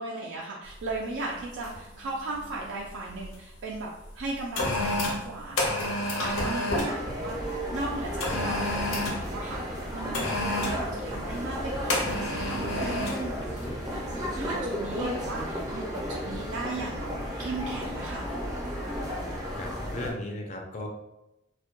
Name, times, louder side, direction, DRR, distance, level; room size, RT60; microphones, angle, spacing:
voice 1, 0.0-5.8 6.2-17.1 17.4-18.3, right 2 dB, 75° right, -2 dB, 0.3 m, -37 dB
sound 1, 0.8-1.0 1.6-1.9 2.2-3.4 4.0-7.0 8.2-9.3 10.1-10.8 11.9-13.2 13.6-13.8, left 1 dB, 85° left, 0.6 m, -30 dB
sound 2, 6.7-20.1, equal, 20° right, 0.5 m, -33 dB
voice 2, 6.9-7.2 19.1-20.9, left 2 dB, 35° left, 1 dB, 0.4 m, -38 dB
2.2 x 2.1 x 2.8 m, 0.92 s
head